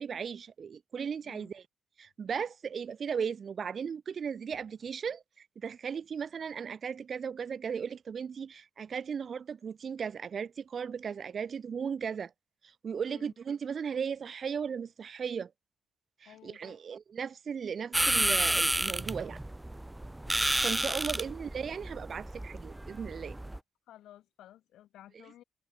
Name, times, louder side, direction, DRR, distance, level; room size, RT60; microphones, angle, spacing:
voice 1, 0.0-1.6 2.0-12.3 12.6-15.5 16.4-19.4 20.6-23.4, right 6 dB, 50° right, 2.3 m, -36 dB
voice 2, 16.3-16.8 21.1-21.2 23.9-25.4, left 13 dB, 80° left, 7.0 m, -54 dB
sound 1, 17.9-23.6, right 1 dB, 10° right, 0.7 m, -31 dB
cardioid pair, 90°, 0 cm